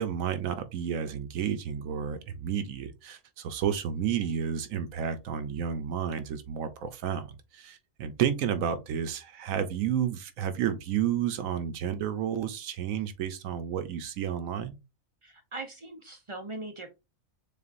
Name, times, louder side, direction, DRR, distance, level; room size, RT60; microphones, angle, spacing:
voice 1, 0.0-14.8, right 9 dB, 75° right, 1.0 m, -31 dB
voice 2, 15.2-16.9, right 2 dB, 50° right, 0.3 m, -40 dB
6.7 x 2.4 x 2.5 m
omnidirectional pair, 1.4 m